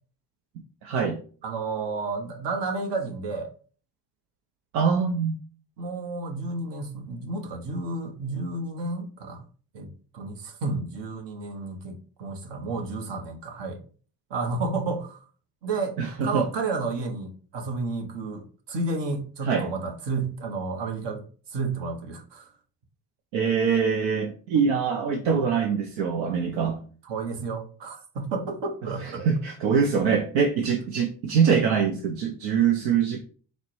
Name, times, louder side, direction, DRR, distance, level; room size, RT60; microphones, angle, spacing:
voice 1, 0.8-1.2 4.7-5.3 16.0-16.4 19.4-19.7 23.3-26.8 29.0-33.2, right 6 dB, 75° right, 0.7 m, -24 dB
voice 2, 1.4-3.5 5.8-9.4 9.7-13.8 14.3-15.2 15.6-21.2 21.5-22.5 27.0-29.3, right 3 dB, 60° right, 1.0 m, -31 dB
4.1 x 2.1 x 4.4 m
hypercardioid pair, 50°, 48 cm